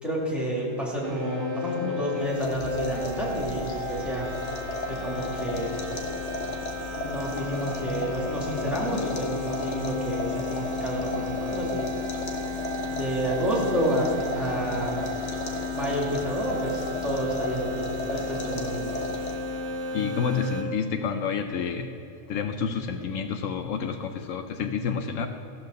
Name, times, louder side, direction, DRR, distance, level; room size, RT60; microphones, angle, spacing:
voice 1, 0.0-4.3 4.9-5.7 6.9-11.9 12.9-15.0 15.7-18.9, right 1 dB, ahead, -5 dB, 2.6 m, -29 dB
sound 1, 1.0-20.6, left 4 dB, 60° right, 1.5 m, -34 dB
sound 2, 2.2-19.6, left 1 dB, 65° left, 1.3 m, -35 dB
voice 2, 19.9-21.9 22.3-25.3, left 6 dB, 80° left, 7 dB, 1.0 m, -29 dB
15.0 x 5.9 x 6.5 m, 2.9 s
omnidirectional pair, 1.3 m